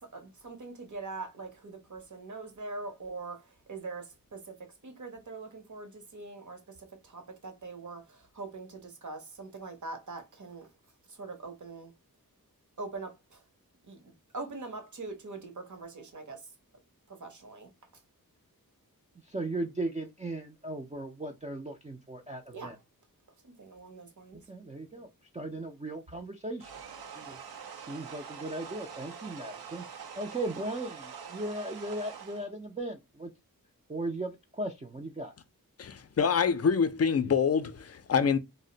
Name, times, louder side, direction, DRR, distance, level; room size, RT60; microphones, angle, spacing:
voice 1, 0.0-10.7 11.1-11.9 12.8-13.4 13.9-16.5 17.1-17.7 22.5-22.7 23.4-24.4, right 3 dB, 55° right, 0.8 m, -43 dB
voice 2, 19.3-22.8 24.5-25.1 25.3-27.4 27.8-29.8 30.2-33.3 33.9-35.3, right 2 dB, 20° right, 0.4 m, -37 dB
sound 1, 26.6-32.5, right 7 dB, 85° right, 0.6 m, -45 dB
voice 3, 35.8-38.4, left 6 dB, 45° left, 0.4 m, -26 dB
2.5 x 2.0 x 3.8 m
wide cardioid pair, 85°, 36 cm